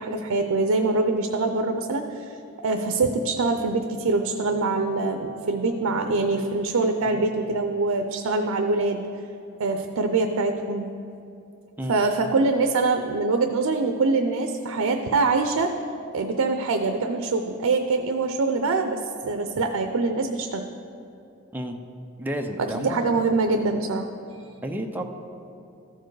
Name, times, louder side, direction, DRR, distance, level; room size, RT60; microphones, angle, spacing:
voice 1, 0.0-9.0 9.6-10.9 11.9-15.8 16.1-20.6 22.6-24.0 24.3-24.5, right 3 dB, 85° right, 6 dB, 0.5 m, -24 dB
voice 2, 22.2-23.1 24.6-25.0, equal, 10° right, 3 dB, 0.5 m, -31 dB
13.5 x 4.6 x 4.7 m, 2.7 s
head